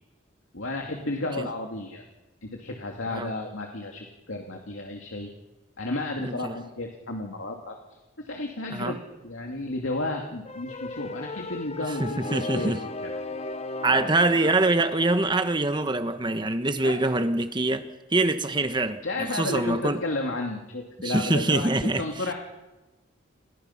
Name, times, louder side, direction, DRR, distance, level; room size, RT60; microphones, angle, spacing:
voice 1, 0.5-2.0 2.4-5.3 5.8-7.8 8.2-9.0 9.2-12.7 13.9-14.1 14.4-14.5 16.8-17.1 19.0-21.7 22.0-22.3, left 2 dB, 90° left, 2.4 m, -32 dB
voice 2, 6.2-6.6 8.7-9.0 11.9-12.8 13.8-20.0 21.0-22.0, right 2 dB, 25° right, 1.1 m, -25 dB
sound 1, 10.4-14.5, left 2 dB, 30° left, 1.0 m, -35 dB
29.0 x 21.0 x 5.8 m
head